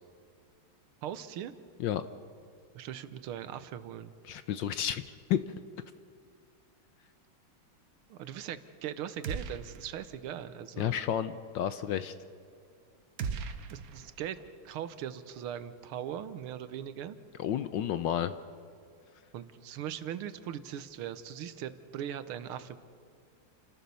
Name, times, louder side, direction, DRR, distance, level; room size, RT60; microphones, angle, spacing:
voice 1, 1.0-1.5 2.8-4.1 8.1-10.9 13.7-14.4 14.7-17.2 19.3-22.8, right 10 dB, 75° right, 13 dB, 1.7 m, -40 dB
voice 2, 4.2-5.4 10.8-12.1 17.4-18.3, left 10 dB, 70° left, 12 dB, 1.2 m, -31 dB
sound 1, 9.2-10.1 10.4-10.5 13.2-14.5, right 6 dB, 55° right, 1.1 m, -38 dB
29.0 x 14.5 x 6.9 m, 2.3 s
omnidirectional pair, 2.4 m